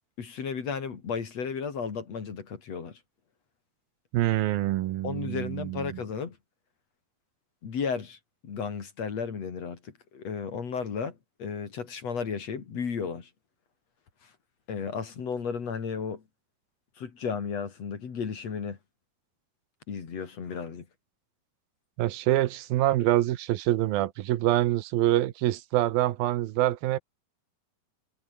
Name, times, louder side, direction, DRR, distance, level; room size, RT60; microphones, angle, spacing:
voice 1, 0.2-3.0 5.0-6.4 7.6-8.2 8.4-13.3 14.7-16.2 17.0-18.8 19.9-20.9, left 6 dB, 45° left, 3.6 m, -34 dB
voice 2, 4.1-5.9 22.0-27.0, right 15 dB, 80° right, 2.8 m, -25 dB
omnidirectional pair, 4.2 m